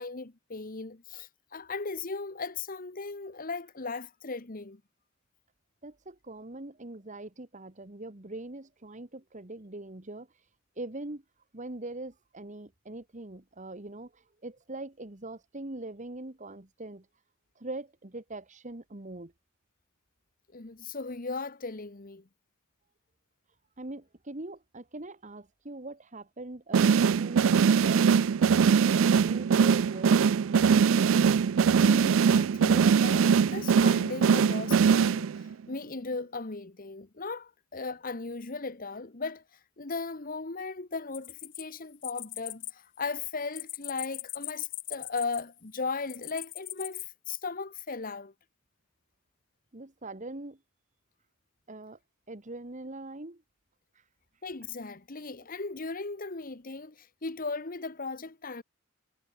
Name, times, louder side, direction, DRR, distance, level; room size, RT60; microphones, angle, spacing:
voice 1, 0.0-4.8 20.5-22.2 31.8-39.4 39.8-48.3 54.4-58.6, left 4 dB, 45° left, 1.2 m, -37 dB
voice 2, 5.8-10.3 10.8-11.2 11.5-14.1 14.4-17.0 17.6-19.3 23.8-28.0 28.4-30.2 49.7-50.6 51.7-52.0 52.3-53.4, right 2 dB, 35° right, 1.6 m, -42 dB
sound 1, 26.7-35.5, right 6 dB, 70° right, 0.4 m, -22 dB
sound 2, 41.1-42.7 43.0-45.6 46.1-47.0, left 16 dB, 65° left, 3.2 m, -40 dB
head